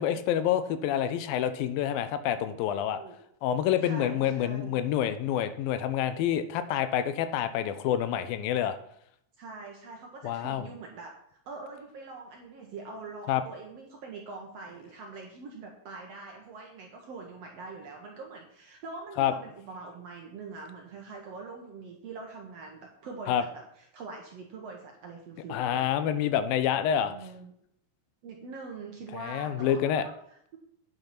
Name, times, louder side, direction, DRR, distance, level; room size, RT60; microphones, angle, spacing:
voice 1, 0.0-3.0 3.4-8.8 10.2-10.6 13.3-13.4 19.2-19.3 23.3-23.4 25.5-27.1 29.1-30.0, left 10 dB, 85° left, 11 dB, 2.4 m, -27 dB
voice 2, 3.8-4.8 9.4-11.1 11.4-25.9 27.0-27.6 28.2-30.6, right 4 dB, 65° right, 1 dB, 1.7 m, -44 dB
9.0 x 5.7 x 5.8 m, 0.70 s
omnidirectional pair, 4.1 m